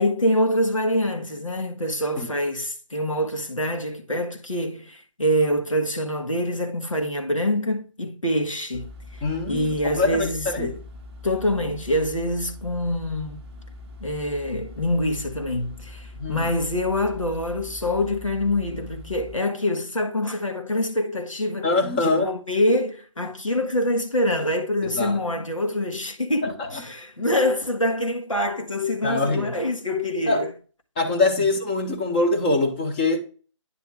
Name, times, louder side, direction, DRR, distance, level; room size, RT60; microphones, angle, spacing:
voice 1, 0.0-10.8 11.2-13.5 14.0-30.5 31.4-31.5, left 1 dB, 90° left, 1.5 m, -25 dB
sound 1, 8.7-19.4, left 2 dB, 10° right, 0.8 m, -42 dB
voice 2, 9.2-10.7 16.2-16.5 21.6-22.3 24.9-25.2 26.4-26.8 27.2-27.3 29.0-29.6 30.3-30.4 31.0-33.2, left 3 dB, 20° left, 1.0 m, -24 dB
9.5 x 3.5 x 4.7 m
figure-of-eight pair, 150°, 16 cm